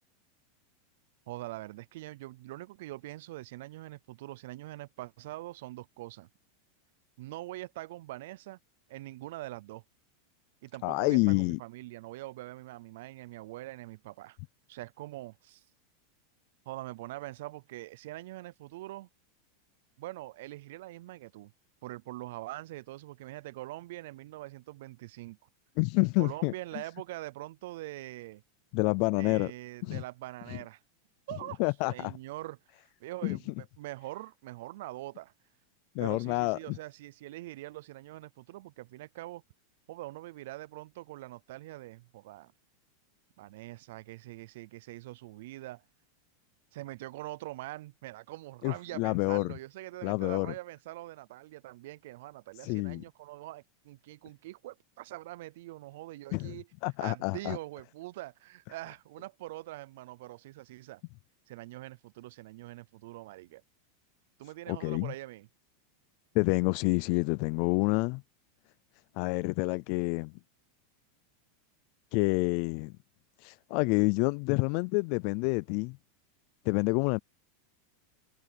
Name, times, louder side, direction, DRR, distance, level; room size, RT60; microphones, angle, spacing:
voice 1, 1.3-6.3 7.2-8.6 8.9-9.8 10.6-14.4 14.7-15.6 16.7-19.1 20.0-21.5 21.8-25.4 26.2-28.4 29.1-30.8 31.3-31.6 31.9-32.6 33.0-35.3 36.0-39.4 39.9-42.5 43.4-45.8 46.7-56.7 57.0-61.0 61.5-63.6 64.4-65.5, right 17 dB, 55° right, 0.3 m, -43 dB
voice 2, 10.8-11.6 25.8-26.5 28.7-29.5 29.8-30.0 30.5-30.6 31.6-32.1 33.2-33.4 36.0-36.8 48.6-49.6 50.0-50.5 52.6-53.0 56.3-56.6 56.8-57.6 64.7-65.1 66.3-68.2 69.2-70.3 72.1-72.9 73.4-76.0 76.7-77.2, left 28 dB, 40° left, 0.3 m, -28 dB
supercardioid pair, 180°, 0 cm